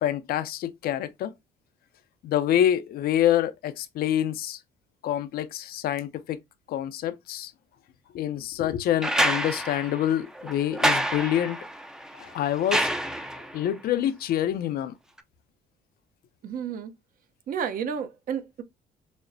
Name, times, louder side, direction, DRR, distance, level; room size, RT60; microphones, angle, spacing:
voice 1, 0.0-1.3 2.2-4.6 5.0-6.4 6.7-7.5 8.1-11.6 12.2-12.9 13.5-14.9, left 11 dB, 65° left, 0.5 m, -26 dB
sound 1, 9.0-13.6 15.2-15.3, right 1 dB, 5° right, 0.5 m, -28 dB
voice 2, 16.4-16.9 17.5-18.6, right 7 dB, 55° right, 0.7 m, -31 dB
6.1 x 2.1 x 2.6 m
cardioid pair, 110°, 17 cm